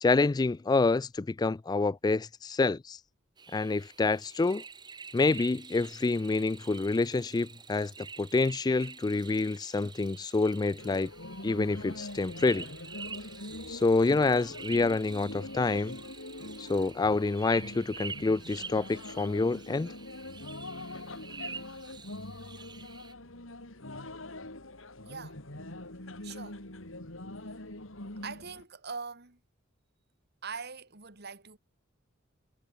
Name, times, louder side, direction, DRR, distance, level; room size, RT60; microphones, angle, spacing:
voice 1, 0.0-3.0 3.5-4.6 5.1-7.9 8.2-11.1 11.4-12.7 13.7-16.0 16.6-19.9, left 3 dB, 20° left, 0.3 m, -27 dB
sound 1, 3.4-23.1, right 5 dB, 20° right, 1.8 m, -47 dB
sound 2, 10.8-28.6, left 2 dB, 80° left, 4.1 m, -43 dB
voice 2, 25.1-25.4 26.2-26.6 28.2-29.4 30.4-31.6, right 5 dB, 55° right, 3.0 m, -42 dB
head